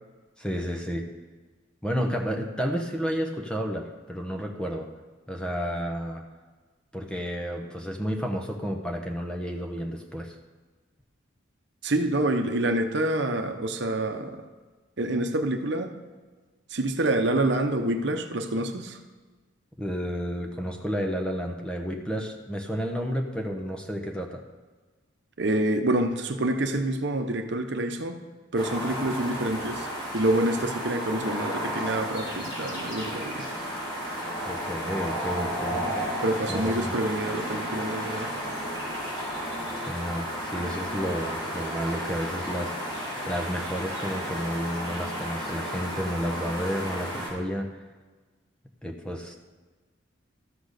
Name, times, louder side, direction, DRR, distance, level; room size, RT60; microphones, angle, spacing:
voice 1, 0.4-1.0 1.8-4.9 5.3-6.2 6.9-10.4 19.8-24.4 34.4-36.0 36.5-37.0 39.8-47.8 48.8-49.4, equal, 5° left, 2 dB, 0.9 m, -31 dB
voice 2, 11.8-14.5 15.0-15.9 16.7-19.0 25.4-28.2 28.5-29.9 30.1-33.5 36.2-38.3, right 1 dB, 60° right, 5 dB, 0.9 m, -27 dB
High voltage pylon - Rome, 28.5-47.3, equal, 25° left, 4.4 m, -33 dB
13.5 x 6.1 x 6.6 m, 1.3 s
head